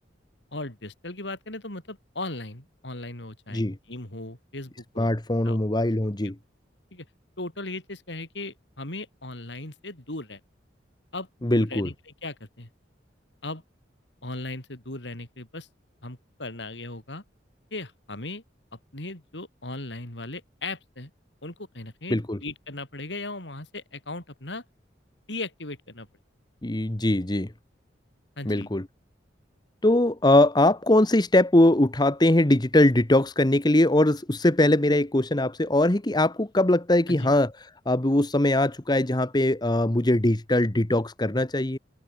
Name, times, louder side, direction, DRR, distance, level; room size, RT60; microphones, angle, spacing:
voice 1, 0.5-5.1 5.4-5.6 6.2-6.3 6.9-7.1 7.4-10.4 11.1-12.7 13.4-13.6 14.2-15.7 16.0-17.2 17.7-18.4 18.9-21.1 21.4-24.6 25.3-26.1 28.4-28.7 37.1-37.3, left 2 dB, 75° left, 4.6 m, -37 dB
voice 2, 5.0-6.3 11.4-11.9 22.1-22.4 26.6-27.5 28.4-28.8 29.8-37.5 37.9-41.8, left 1 dB, 25° left, 1.2 m, -21 dB
head